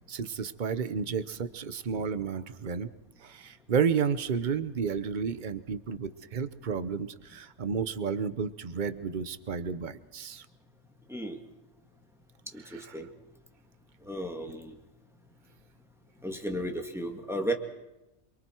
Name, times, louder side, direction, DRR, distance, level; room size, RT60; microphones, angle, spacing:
voice 1, 0.1-2.9 3.2-10.5, right 6 dB, 40° right, 13 dB, 1.0 m, -31 dB
voice 2, 12.5-13.1 14.0-14.7 16.2-17.5, right 1 dB, ahead, 3 dB, 2.1 m, -34 dB
28.0 x 23.5 x 4.6 m, 0.97 s
omnidirectional pair, 1.4 m